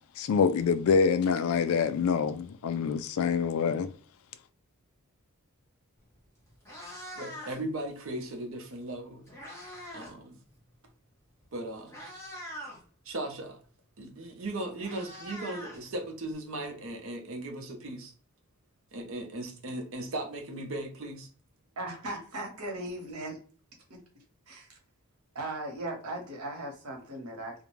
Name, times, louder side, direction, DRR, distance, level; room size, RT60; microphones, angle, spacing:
voice 1, 0.2-3.9, left 5 dB, 70° left, 0.3 m, -26 dB
Meow, 6.0-6.2 6.5-7.8 8.8-10.2 10.5-10.7 11.4-11.5 11.9-12.8 14.1-14.2 14.4-16.3, equal, 10° left, 0.8 m, -43 dB
voice 2, 7.2-9.3 9.9-10.4 11.5-12.0 13.0-13.6 14.0-18.1 18.9-21.3 27.2-27.3, right 1 dB, 60° right, 0.6 m, -37 dB
voice 3, 21.8-23.4 23.9-24.0 24.5-24.7 25.3-27.6, right 1 dB, 80° right, 1.0 m, -38 dB
2.4 x 2.1 x 3.0 m
head